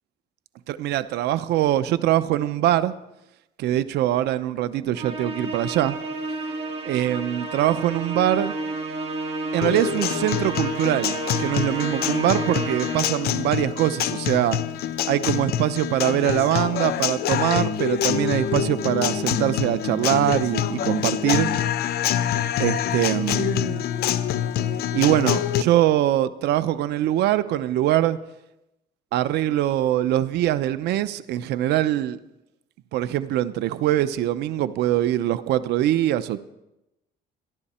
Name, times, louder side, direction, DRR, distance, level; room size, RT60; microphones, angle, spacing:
voice 1, 0.7-2.9 3.6-6.0 6.8-8.5 9.5-14.6 15.1-21.5 22.6-23.9 24.9-28.2 29.1-32.2 32.9-36.4, right 13 dB, 80° right, 14 dB, 0.8 m, -23 dB
Musical instrument, 4.9-13.4, right 2 dB, 35° right, 2.5 m, -31 dB
Guitar, 9.6-25.6, left 10 dB, 70° left, 0.8 m, -26 dB
27.5 x 11.0 x 4.4 m, 0.90 s
cardioid pair, 110°, 17 cm